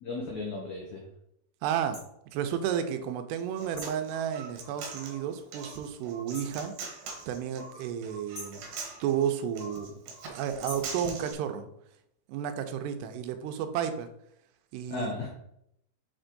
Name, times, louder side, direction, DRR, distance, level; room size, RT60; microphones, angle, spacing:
voice 1, 0.0-1.1 14.9-15.3, left 3 dB, 85° left, -1 dB, 1.6 m, -35 dB
voice 2, 1.6-2.0 2.3-6.7 7.3-8.6 9.0-10.0 10.3-11.7 12.3-14.1 14.7-15.1, right 9 dB, 90° right, 8 dB, 2.7 m, -32 dB
sound 1, 1.9-2.1 3.8-4.0 6.3-6.6 8.3-8.6 10.6-11.0, left 1 dB, 60° left, 0.7 m, -43 dB
Human voice, 3.3-11.3, right 4 dB, 65° right, 2.6 m, -42 dB
6.9 x 4.5 x 3.9 m, 0.77 s
omnidirectional pair, 4.8 m